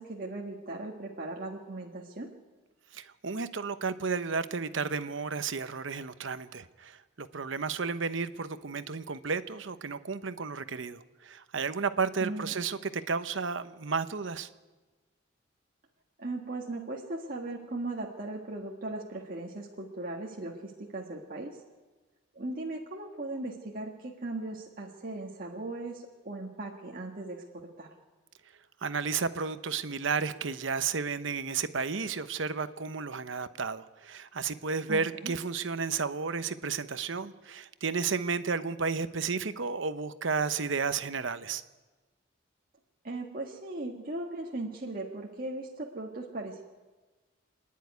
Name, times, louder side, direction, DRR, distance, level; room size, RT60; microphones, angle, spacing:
voice 1, 0.0-2.3 12.2-12.6 16.2-21.6 22.3-27.4 27.8-27.9 34.9-35.3 43.0-46.6, right 2 dB, 45° right, -1 dB, 1.7 m, -38 dB
voice 2, 2.9-14.5 28.8-41.6, right 5 dB, 65° right, 12 dB, 0.9 m, -32 dB
27.5 x 10.5 x 9.6 m, 1.3 s
head